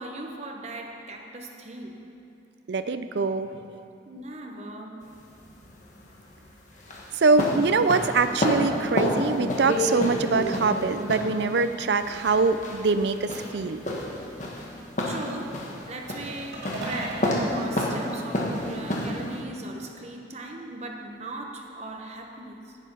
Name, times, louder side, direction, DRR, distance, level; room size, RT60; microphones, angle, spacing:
voice 1, 0.0-2.2 4.1-5.3 15.0-22.8, right 2 dB, 35° right, 1 dB, 1.0 m, -39 dB
voice 2, 2.7-3.5 7.2-13.8, right 4 dB, 65° right, 11 dB, 0.5 m, -23 dB
sound 1, 5.0-19.4, left 1 dB, 40° left, 1.4 m, -30 dB
sound 2, 16.5-18.9, right 1 dB, 90° right, 2.8 m, -38 dB
10.0 x 8.4 x 5.5 m, 2.8 s
head